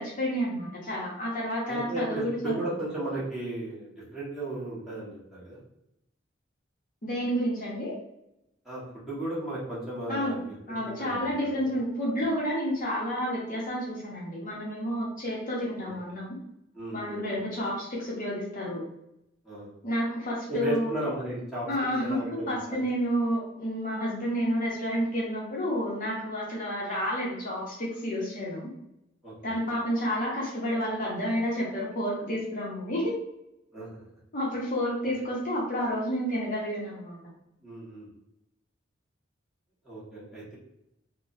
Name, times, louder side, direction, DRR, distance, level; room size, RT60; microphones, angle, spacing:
voice 1, 0.0-2.5 7.0-7.9 10.1-10.4 10.7-16.4 16.9-18.8 19.8-20.9 21.7-28.7 29.4-33.1 34.3-37.2, equal, 45° left, -5 dB, 0.8 m, -30 dB
voice 2, 1.7-5.6 8.6-10.4 10.7-11.3 11.5-11.7 15.9-16.0 16.7-17.2 19.4-19.7 20.5-21.7 22.0-22.9 29.2-29.5 33.7-34.0 37.6-38.1 39.8-40.5, right 2 dB, ahead, -10 dB, 1.3 m, -35 dB
3.2 x 2.1 x 2.6 m, 0.85 s
head